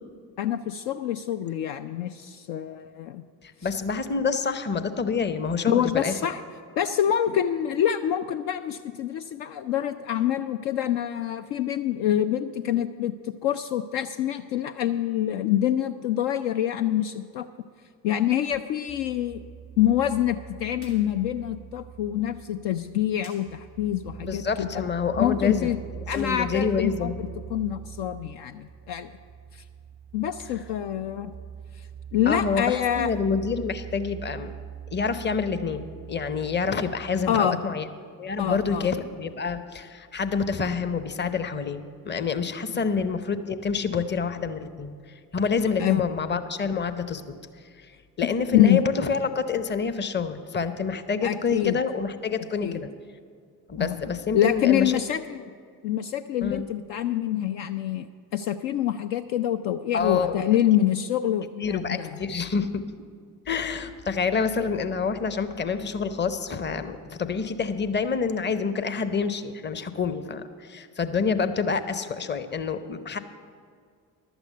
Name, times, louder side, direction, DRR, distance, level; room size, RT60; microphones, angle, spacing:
voice 1, 0.4-3.2 5.7-6.4 6.8-17.5 18.0-19.4 19.8-24.8 25.2-25.8 26.1-29.2 29.5-29.6 30.1-31.3 31.8-31.9 32.1-33.1 37.3-37.6 38.4-38.9 45.8-46.0 48.5-48.8 51.2-51.8 52.6-52.8 53.8-54.0 54.3-55.4 55.8-58.1 58.3-62.2, left 11 dB, 55° left, 9 dB, 0.5 m, -26 dB
voice 2, 3.4-6.1 24.2-25.7 26.1-27.2 32.3-34.5 34.9-37.9 38.2-44.9 45.3-47.2 47.8-47.9 48.2-52.9 53.7-55.0 56.4-56.6 59.9-60.4 61.6-62.8 63.5-73.2, left 5 dB, 20° left, 11 dB, 0.7 m, -27 dB
sound 1, 18.9-37.3, right 8 dB, 30° right, 0.5 m, -42 dB
sound 2, 20.7-21.0 21.3-21.4 23.2-23.4 26.0-27.3, left 3 dB, 75° left, 2.9 m, -50 dB
12.0 x 8.0 x 6.6 m, 2.2 s
figure-of-eight pair, 45°, 50 cm